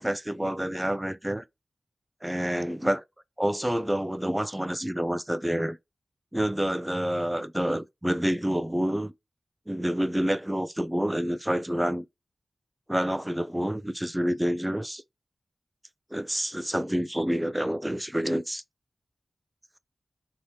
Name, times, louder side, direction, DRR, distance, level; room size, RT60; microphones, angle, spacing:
voice 1, 0.0-1.4 2.2-3.0 3.4-5.8 6.3-9.1 9.7-12.1 12.9-15.0 16.1-18.6, equal, 10° right, 0.4 m, -28 dB
3.2 x 2.8 x 2.7 m
cardioid pair, 55°, 0 cm